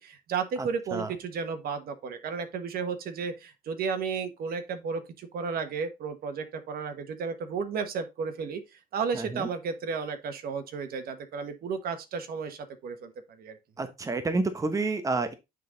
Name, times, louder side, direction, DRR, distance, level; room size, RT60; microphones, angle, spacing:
voice 1, 0.0-8.6 8.9-13.6, right 5 dB, 60° right, 1.4 m, -33 dB
voice 2, 0.6-1.1 9.1-9.5 13.8-15.3, right 3 dB, 20° right, 1.0 m, -29 dB
9.2 x 3.9 x 4.0 m
cardioid pair, 110°, 17 cm